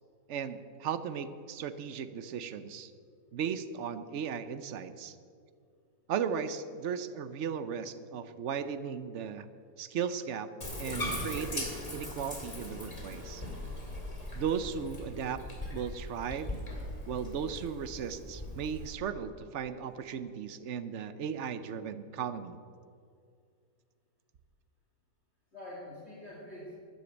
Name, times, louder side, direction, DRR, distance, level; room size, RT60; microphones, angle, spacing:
voice 1, 0.3-2.9 3.3-5.2 6.1-9.5 9.8-10.5 10.8-13.4 14.3-15.4 15.7-16.5 17.1-22.6, right 7 dB, 60° right, 12 dB, 0.8 m, -36 dB
Bathtub (filling or washing), 10.6-18.9, left 1 dB, 20° left, 2.3 m, -40 dB
voice 2, 25.5-26.7, left 1 dB, 35° left, -7 dB, 2.7 m, -48 dB
12.0 x 10.0 x 8.0 m, 2.2 s
omnidirectional pair, 1.9 m